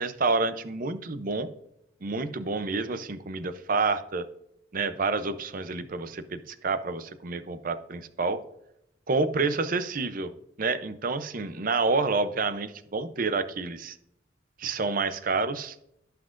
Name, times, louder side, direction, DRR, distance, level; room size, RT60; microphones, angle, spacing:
voice 1, 0.0-1.5 2.0-4.3 4.7-8.4 9.1-10.3 10.6-14.0 14.6-15.8, right 3 dB, 45° right, 12 dB, 0.6 m, -28 dB
16.5 x 5.9 x 2.5 m, 0.79 s
head